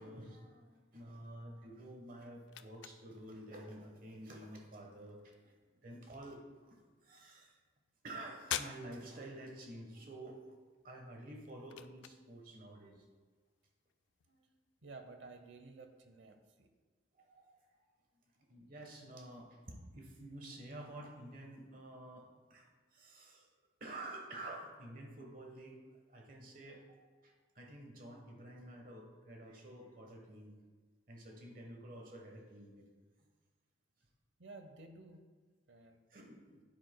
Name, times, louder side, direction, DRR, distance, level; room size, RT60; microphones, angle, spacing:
voice 1, 0.0-5.5 5.8-7.6 8.0-10.4 10.8-13.0 14.3-14.5 17.2-17.8 18.3-23.5 23.8-30.6 31.1-32.9 36.1-36.6, right 1 dB, 45° right, 2 dB, 1.2 m, -50 dB
sound 1, 1.7-16.1, left 10 dB, 65° left, 0.3 m, -51 dB
voice 2, 14.8-16.7 34.4-35.2 35.7-36.0, right 3 dB, 75° right, 7 dB, 0.7 m, -53 dB
9.6 x 7.8 x 2.2 m, 1.4 s
head